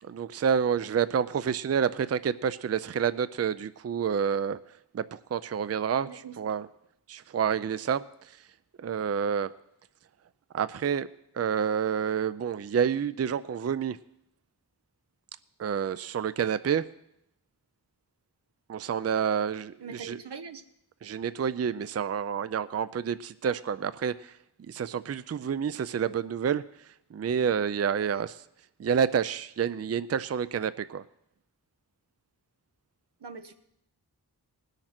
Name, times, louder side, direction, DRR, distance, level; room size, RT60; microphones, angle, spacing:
voice 1, 0.0-4.6 4.9-6.1 6.4-6.7 7.1-8.4 8.8-9.5 10.5-11.1 11.3-14.0 15.6-16.8 18.7-19.7 20.0-20.2 21.0-28.4 28.8-31.0, right 7 dB, 40° right, 16 dB, 0.4 m, -29 dB
voice 2, 6.0-6.4 19.8-20.6 28.1-28.2 33.2-33.5, right 5 dB, 85° right, 8 dB, 1.0 m, -42 dB
19.5 x 6.6 x 5.9 m, 0.79 s
wide cardioid pair, 65°, 40 cm